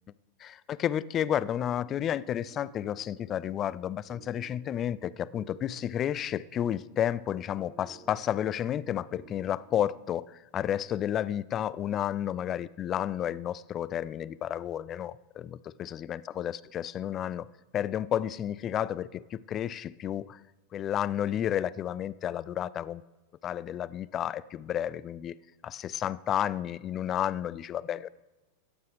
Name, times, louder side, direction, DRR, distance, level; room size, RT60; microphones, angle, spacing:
voice 1, 0.4-17.5 17.7-20.4 20.7-23.0 23.4-25.4 25.6-28.1, left 10 dB, 30° left, 0.3 m, -31 dB
sound 1, 1.6-9.8, right 7 dB, 25° right, 0.8 m, -56 dB
14.5 x 9.8 x 3.4 m
figure-of-eight pair, 90°, 0 cm